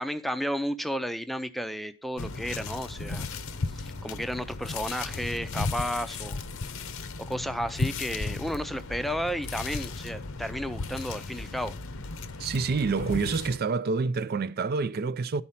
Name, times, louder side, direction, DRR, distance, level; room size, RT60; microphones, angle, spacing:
voice 1, 0.0-3.3 3.7-6.4 7.2-11.7, equal, ahead, 0.5 m, -33 dB
sound 1, 2.2-13.6, left 3 dB, 70° left, 0.7 m, -35 dB
voice 2, 12.4-15.4, right 4 dB, 45° right, 0.4 m, -27 dB
12.5 x 4.2 x 5.7 m
head